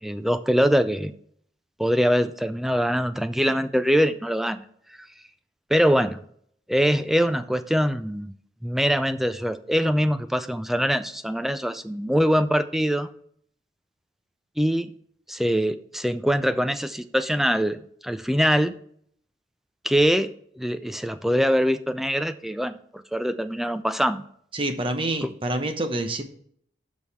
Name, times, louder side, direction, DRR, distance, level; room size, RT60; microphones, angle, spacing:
voice 1, 0.0-1.1 1.8-4.6 5.7-6.2 6.7-8.3 8.6-13.1 14.6-14.9 15.3-18.7 19.8-20.3 20.6-24.3 25.2-25.3, equal, ahead, 11 dB, 0.3 m, -23 dB
voice 2, 24.5-26.2, right 1 dB, 30° right, 7 dB, 0.8 m, -27 dB
6.3 x 5.4 x 5.6 m, 0.64 s
head